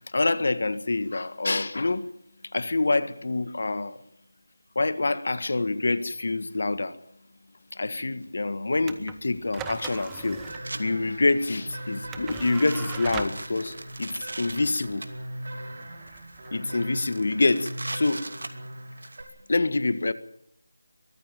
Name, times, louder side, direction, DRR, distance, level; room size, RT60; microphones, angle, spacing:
voice 1, 0.1-2.0 2.5-4.0 4.7-6.9 7.7-10.4 10.7-15.0 16.5-18.3 19.5-20.1, left 2 dB, 55° left, 1.6 m, -26 dB
sound 1, 8.3-8.4 9.6-10.8 11.3-11.6 12.2-15.1 15.8-16.5 16.7-16.8 17.1-19.2, right 2 dB, 75° right, 2.6 m, -40 dB
sound 2, 8.8-17.3, right 8 dB, 10° right, 0.8 m, -42 dB
sound 3, 10.3-19.2, right 1 dB, 50° right, 5.5 m, -39 dB
23.0 x 15.0 x 9.1 m
figure-of-eight pair, 170°, 0 cm